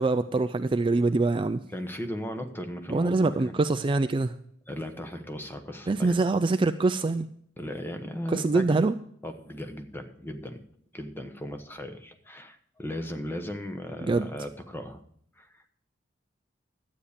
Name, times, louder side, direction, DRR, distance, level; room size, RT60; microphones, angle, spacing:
voice 1, 0.0-1.6 2.9-4.3 5.9-7.3 8.3-8.9 14.0-14.3, right 3 dB, 25° right, 10 dB, 0.4 m, -24 dB
voice 2, 1.7-3.6 4.7-6.2 7.6-8.8 9.2-10.6 10.9-15.0 15.4-15.7, left 1 dB, 10° left, 7 dB, 1.0 m, -37 dB
12.5 x 8.5 x 5.0 m, 0.64 s
head